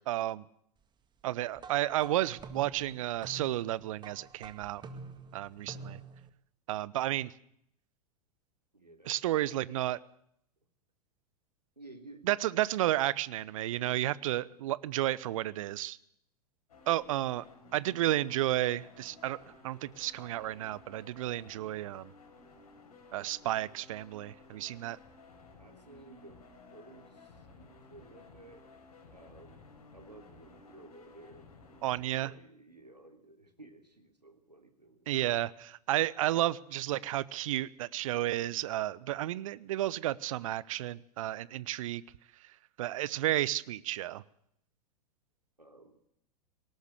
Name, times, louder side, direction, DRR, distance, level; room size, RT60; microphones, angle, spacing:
voice 1, 0.1-0.4 1.2-4.8 5.3-6.0 6.7-7.3 9.1-10.0 12.3-16.0 16.9-17.4 17.7-19.4 19.6-22.1 23.1-25.0 31.8-32.3 35.1-42.0 42.8-44.2, right 14 dB, 55° right, 21 dB, 0.9 m, -32 dB
sound 1, 1.6-6.3, right 4 dB, 20° right, 1.9 m, -48 dB
voice 2, 8.7-9.2 11.8-12.3 17.0-17.2 25.6-26.4 26.7-28.6 29.1-29.6 29.9-35.1 45.6-46.0, right 2 dB, 85° right, 6 dB, 3.0 m, -55 dB
sound 2, 16.7-32.0, left 3 dB, 65° left, 5.5 m, -56 dB
18.5 x 18.5 x 8.0 m, 0.72 s
figure-of-eight pair, 95°, 20 cm